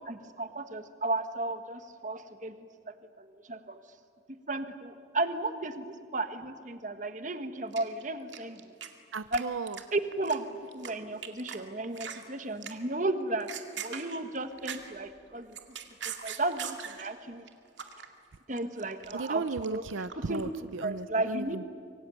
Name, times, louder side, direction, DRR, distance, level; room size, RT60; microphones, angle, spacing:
voice 1, 0.1-2.5 2.9-3.8 4.5-5.8 6.1-8.7 9.3-9.4 9.9-10.5 10.7-13.5 13.8-15.6 16.0-17.5 18.5-19.8 20.3-20.4 20.8-21.6, right 2 dB, 40° right, 9 dB, 1.4 m, -34 dB
sound 1, 7.7-8.9 9.1-9.4 9.7-10.9 11.2-11.6 11.8-12.2 12.6-12.9 13.3-15.0 15.4-17.1 17.5-18.1 18.3-20.4, right 8 dB, 75° right, 2.1 m, -40 dB
voice 2, 9.1-9.8 19.1-21.6, right 4 dB, 90° right, 14 dB, 0.6 m, -35 dB
25.0 x 23.5 x 9.1 m, 2.3 s
head